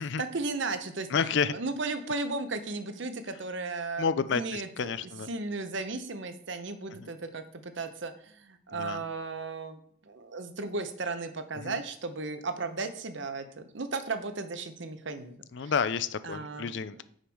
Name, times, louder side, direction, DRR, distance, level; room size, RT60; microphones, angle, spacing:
voice 1, 0.0-1.1 1.5-4.1 4.3-15.7 16.2-16.7, right 3 dB, 60° right, 9 dB, 0.8 m, -35 dB
voice 2, 1.1-1.6 4.0-5.3 7.0-7.1 8.7-9.0 11.6-11.8 15.5-17.0, left 6 dB, 55° left, 15 dB, 0.4 m, -30 dB
6.6 x 4.8 x 6.2 m, 0.64 s
head